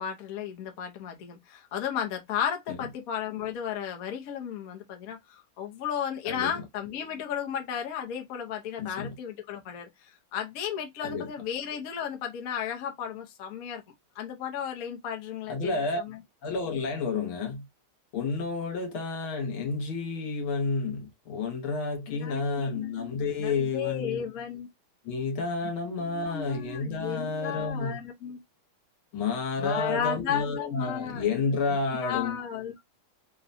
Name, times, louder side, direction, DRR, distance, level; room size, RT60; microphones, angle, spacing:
voice 1, 0.0-13.8 14.1-16.2 22.1-24.7 26.0-28.4 29.6-31.4 31.6-32.7, left 9 dB, 60° left, 0.9 m, -34 dB
voice 2, 8.8-9.1 11.0-11.3 15.5-16.0 16.4-17.6 18.1-24.2 25.0-28.0 29.1-32.4, left 4 dB, 75° left, 1.8 m, -30 dB
3.8 x 2.2 x 2.5 m
omnidirectional pair, 2.3 m